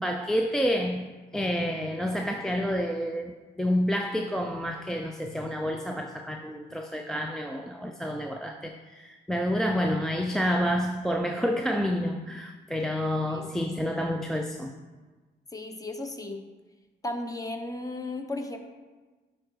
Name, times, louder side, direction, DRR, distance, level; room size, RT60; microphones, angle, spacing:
voice 1, 0.0-14.7, equal, ahead, 2 dB, 0.4 m, -29 dB
voice 2, 15.5-16.4 17.0-18.6, left 2 dB, 20° left, 5 dB, 0.8 m, -35 dB
9.4 x 4.4 x 3.1 m, 1.3 s
cardioid pair, 90°, 20 cm